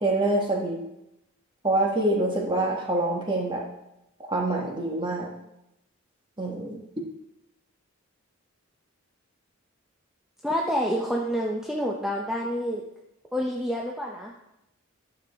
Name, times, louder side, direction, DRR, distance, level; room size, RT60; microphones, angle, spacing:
voice 1, 0.0-0.8 1.6-3.6 4.3-5.3 6.4-6.8, right 2 dB, 20° right, -1 dB, 1.5 m, -25 dB
voice 2, 10.4-12.8 13.3-14.3, equal, 5° right, -2 dB, 0.7 m, -28 dB
12.5 x 6.9 x 3.6 m, 0.88 s
head